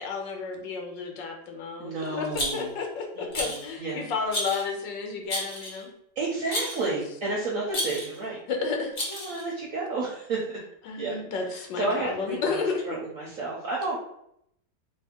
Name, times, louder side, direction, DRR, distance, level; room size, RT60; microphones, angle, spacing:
voice 1, 0.0-1.9 2.2-2.3 2.5-5.9 8.5-8.9 10.9-12.8, left 4 dB, 80° left, 3 dB, 1.5 m, -31 dB
voice 2, 1.8-2.8 3.1-4.0 6.1-8.4 9.1-10.6 11.0-11.1 11.4-12.6 12.8-14.0, right 3 dB, 55° right, -5 dB, 1.1 m, -31 dB
Rattle, 2.3-2.8 3.3-3.7 4.3-4.7 5.3-5.8 6.5-6.9 7.7-8.2 8.9-9.5, equal, 35° left, 1.0 m, -31 dB
3.6 x 2.7 x 4.2 m, 0.75 s
omnidirectional pair, 1.9 m